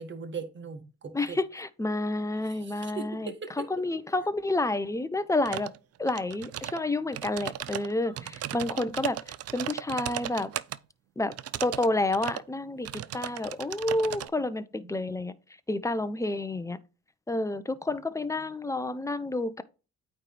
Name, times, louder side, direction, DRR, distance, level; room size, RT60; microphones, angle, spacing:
voice 1, 0.0-1.4 2.4-3.8 8.0-8.7 14.7-15.1, right 5 dB, 40° right, 1.5 m, -41 dB
voice 2, 1.1-3.3 3.6-5.7 6.0-10.5 11.2-11.3 11.6-12.9 13.1-15.3 15.7-16.8 17.3-19.6, left 2 dB, 10° left, 0.7 m, -29 dB
sound 1, 5.5-5.8 6.1-6.8 7.1-10.8 11.3-11.9 12.1-12.4 12.8-14.3, right 12 dB, 55° right, 0.5 m, -36 dB
8.9 x 3.4 x 4.6 m
cardioid pair, 90°, 30 cm